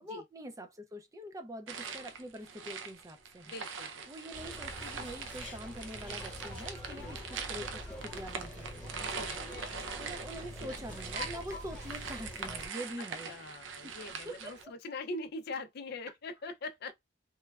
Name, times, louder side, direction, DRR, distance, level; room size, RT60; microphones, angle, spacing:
voice 1, 0.0-3.5 4.1-9.0 10.0-13.3 13.8-13.9 14.2-14.7, equal, 15° right, 0.4 m, -45 dB
sound 1, 1.7-14.6, right 5 dB, 85° right, 0.5 m, -42 dB
voice 2, 3.5-4.3 6.9-7.2 9.2-9.6 10.6-10.7 13.3-16.9, left 2 dB, 55° left, 0.4 m, -42 dB
sound 2, 4.3-12.7, left 1 dB, 5° left, 1.0 m, -45 dB
3.0 x 2.2 x 2.3 m
head